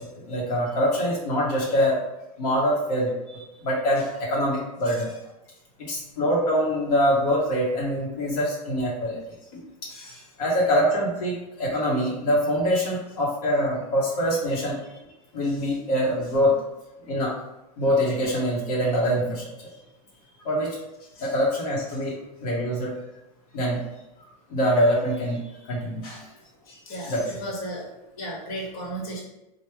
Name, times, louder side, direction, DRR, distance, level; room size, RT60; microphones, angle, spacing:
voice 1, 0.0-2.0 2.4-3.1 3.6-5.1 5.8-9.2 9.8-9.9 10.4-14.8 15.3-16.6 17.1-17.4 17.8-19.5 20.4-20.8 21.2-22.9 23.5-23.8 24.5-25.4 25.7-26.0 27.1-27.2, equal, 90° left, -5 dB, 0.9 m, -24 dB
voice 2, 26.7-27.1 27.4-29.2, right 1 dB, 65° left, -2 dB, 1.1 m, -35 dB
3.3 x 2.1 x 3.1 m, 0.94 s
supercardioid pair, 135°, 19 cm